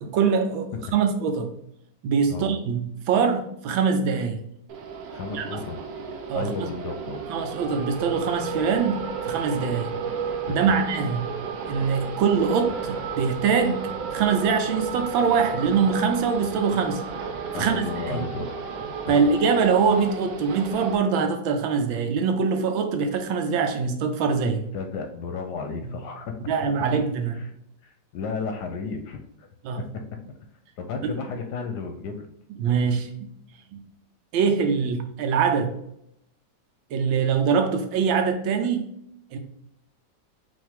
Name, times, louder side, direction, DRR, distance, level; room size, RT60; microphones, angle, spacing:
voice 1, 0.0-1.5 2.0-4.4 5.3-5.5 6.3-6.7 7.3-9.9 10.5-11.2 11.7-17.0 17.5-18.2 19.1-24.7 25.8-25.9 26.5-27.4 29.6-29.8 31.0-31.1 32.6-33.1 33.7-33.8 34.3-35.7 36.9-38.9 39.3-39.4, right 6 dB, 90° right, 5 dB, 1.5 m, -23 dB
sound 1, 4.7-21.0, right 5 dB, 75° right, 1.3 m, -33 dB
voice 2, 5.1-5.8 6.3-7.2 10.4-10.8 17.5-18.6 19.1-19.3 24.7-26.3 27.3-27.5 27.8-29.5 29.8-30.0 30.8-32.3, left 5 dB, 70° left, 5 dB, 1.0 m, -33 dB
5.4 x 2.8 x 3.5 m, 0.76 s
omnidirectional pair, 2.1 m